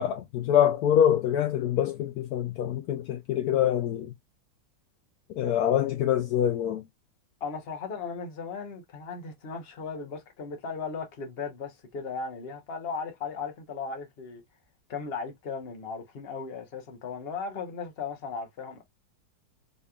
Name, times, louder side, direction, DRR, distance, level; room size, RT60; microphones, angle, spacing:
voice 1, 0.0-4.1 5.3-6.8, left 10 dB, 75° left, 0.8 m, -25 dB
voice 2, 7.4-14.4 14.9-18.8, left 5 dB, 40° left, 1.0 m, -36 dB
4.1 x 3.2 x 2.2 m
omnidirectional pair, 2.1 m